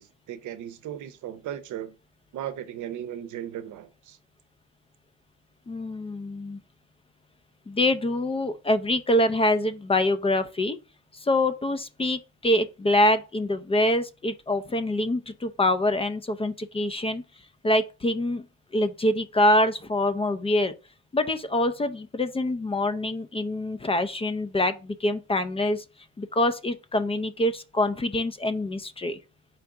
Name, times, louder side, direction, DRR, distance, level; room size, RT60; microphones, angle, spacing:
voice 1, 0.0-1.9 2.3-4.2, right 10 dB, 75° right, 0.7 m, -36 dB
voice 2, 5.7-6.6 7.7-10.8 11.1-17.2 17.6-18.4 18.7-20.7 21.1-25.8 26.2-29.2, left 1 dB, 20° left, 0.4 m, -25 dB
4.5 x 2.5 x 4.7 m
cardioid pair, 90°, 30 cm